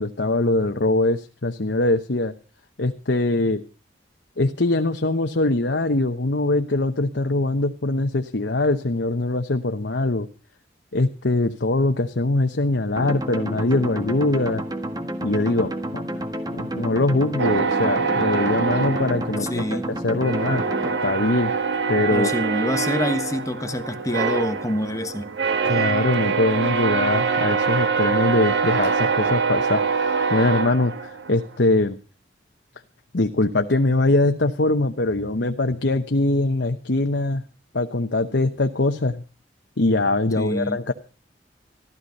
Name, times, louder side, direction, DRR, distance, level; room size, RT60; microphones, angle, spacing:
voice 1, 0.0-2.3 2.8-3.6 4.4-10.3 10.9-14.6 15.2-16.2 16.5-21.5 21.9-22.3 25.6-32.0 33.1-37.4 37.7-39.2 39.8-40.9, left 2 dB, 70° left, 1.0 m, -22 dB
sound 1, 13.0-21.0, right 1 dB, 20° right, 1.6 m, -30 dB
sound 2, 17.4-19.8 20.2-31.4, right 5 dB, 70° right, 1.6 m, -24 dB
voice 2, 19.4-19.9 22.1-25.3 40.4-40.8, left 1 dB, 20° left, 1.3 m, -26 dB
15.0 x 13.0 x 5.4 m
head